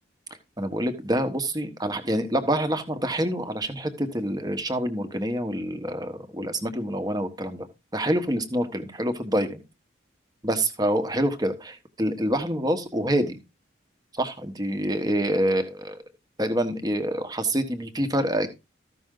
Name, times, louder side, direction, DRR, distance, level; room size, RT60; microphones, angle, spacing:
voice 1, 0.6-7.7 7.9-9.6 10.4-13.4 14.1-16.0 16.4-18.6, right 1 dB, 20° right, 8 dB, 1.3 m, -26 dB
14.5 x 6.1 x 3.8 m, 0.26 s
head